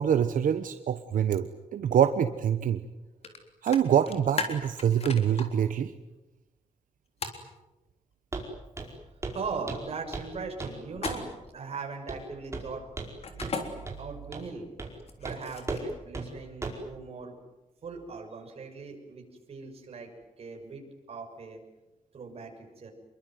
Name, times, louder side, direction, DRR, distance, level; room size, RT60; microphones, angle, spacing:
voice 1, 0.0-2.8 3.6-5.9, right 9 dB, 85° right, 9 dB, 1.2 m, -25 dB
sound 1, 3.2-3.4 3.7-5.5 7.2-7.4 10.9-11.5 13.2-13.6 15.0-15.9, left 4 dB, 50° left, 3.7 m, -35 dB
Walk footsteps, 8.3-8.5 8.8-9.0 9.2-9.4 9.7-10.3 10.6-10.8 11.1-11.3 12.1-12.2 12.5-13.1 13.4-13.6 13.9-14.0 14.3-14.5 14.8-15.0 15.2-15.4 15.7-15.9 16.1-16.3 16.6-16.9, right 3 dB, 20° right, 5.0 m, -36 dB
voice 2, 9.3-13.2 14.0-14.7 15.2-17.3 17.8-20.1 20.4-20.8 21.1-21.6 22.1-22.9, right 4 dB, 50° right, 2 dB, 6.6 m, -39 dB
27.5 x 23.0 x 9.4 m, 1.0 s
wide cardioid pair, 170°, 13 cm